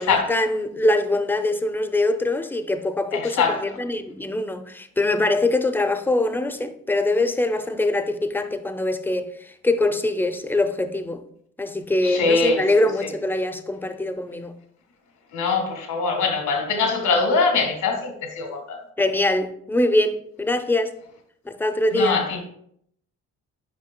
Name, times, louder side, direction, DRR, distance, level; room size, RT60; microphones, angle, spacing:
voice 1, 0.0-11.2 11.6-14.5 19.0-20.9 21.5-22.2, left 2 dB, 5° left, 0.5 m, -23 dB
voice 2, 3.1-3.8 12.0-13.1 15.3-18.8 21.9-22.4, left 4 dB, 80° left, 1.6 m, -23 dB
9.6 x 5.1 x 2.2 m
cardioid pair, 90°, 30 cm